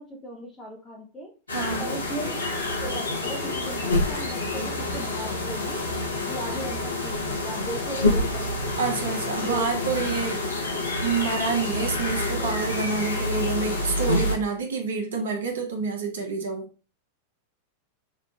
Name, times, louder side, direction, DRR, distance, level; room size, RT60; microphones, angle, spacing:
voice 1, 0.0-1.3 1.8-2.4 2.8-5.8 6.2-8.7 9.4-9.8 12.4-12.5 13.1-13.7, right 1 dB, 20° left, -2 dB, 0.7 m, -37 dB
sound 1, 1.5-14.4, left 2 dB, 80° left, 0.8 m, -27 dB
voice 2, 1.5-1.8 8.8-10.4 11.0-16.7, right 5 dB, 60° right, 3 dB, 0.6 m, -28 dB
4.8 x 2.4 x 2.2 m, 0.34 s
figure-of-eight pair, 90°, 0 cm